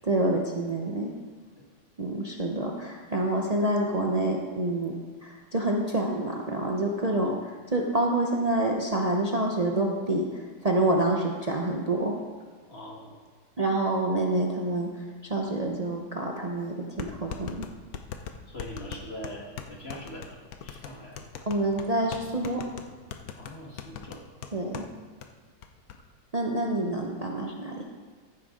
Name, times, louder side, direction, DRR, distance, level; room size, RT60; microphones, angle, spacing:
voice 1, 0.0-1.1 2.0-4.9 5.2-12.2 13.6-17.7 21.5-22.6 24.5-24.9 26.3-27.8, right 1 dB, 85° right, 0 dB, 0.3 m, -27 dB
voice 2, 12.7-13.2 18.5-21.2 23.4-24.2, equal, 35° left, -1 dB, 1.9 m, -42 dB
sound 1, 16.1-16.2 17.0-24.9 25.2-25.3 25.6-26.0, left 8 dB, 60° left, 1.0 m, -40 dB
14.5 x 9.0 x 3.8 m, 1.5 s
omnidirectional pair, 2.1 m